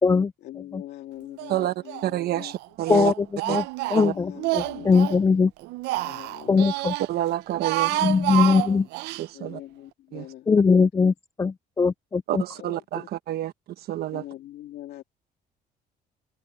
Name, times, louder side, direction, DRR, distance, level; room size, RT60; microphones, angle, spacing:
voice 1, 0.4-2.6 4.1-5.4 6.0-6.8 7.8-8.9 9.3-10.5 12.5-13.1 14.1-15.0, left 13 dB, 75° left, 2.8 m, -42 dB
Speech, 1.4-2.1 2.4-5.2 5.6-7.1 7.5-9.3, right 19 dB, 85° right, 0.5 m, -29 dB
voice 2, 2.0-3.1 3.5-3.6 3.9-4.1 7.1-8.0 9.2-9.6 10.1-10.2 12.3-14.2, right 13 dB, 70° right, 1.2 m, -28 dB
voice 3, 3.9-5.5 6.5-6.9 8.0-8.8 10.5-12.4, left 5 dB, 20° left, 0.3 m, -20 dB
cardioid pair, 110°, 17 cm